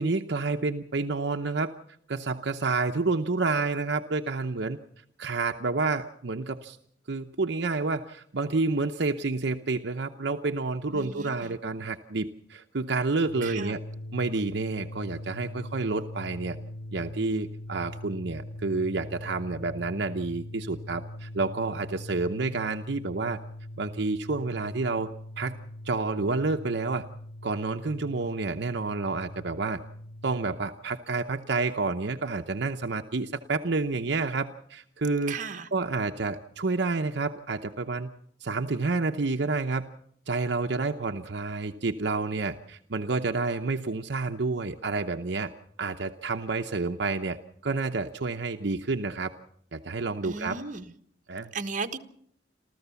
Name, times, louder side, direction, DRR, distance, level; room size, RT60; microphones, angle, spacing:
voice 1, 0.0-1.7 2.1-4.8 5.2-6.8 7.1-13.8 14.1-16.6 16.9-23.4 23.8-25.1 25.4-25.6 25.8-27.0 27.4-29.8 30.2-35.4 35.7-38.1 38.4-39.8 40.3-45.5 45.8-47.4 47.6-49.3 49.7-50.6 51.3-51.5, right 3 dB, 65° right, 0.8 m, -29 dB
voice 2, 10.9-11.6 13.4-13.8 35.3-35.7 50.2-50.9 51.5-52.0, right 4 dB, 45° right, 1.3 m, -36 dB
sound 1, 13.3-30.6, left 1 dB, 80° left, 4.5 m, -41 dB
28.0 x 14.0 x 7.0 m
head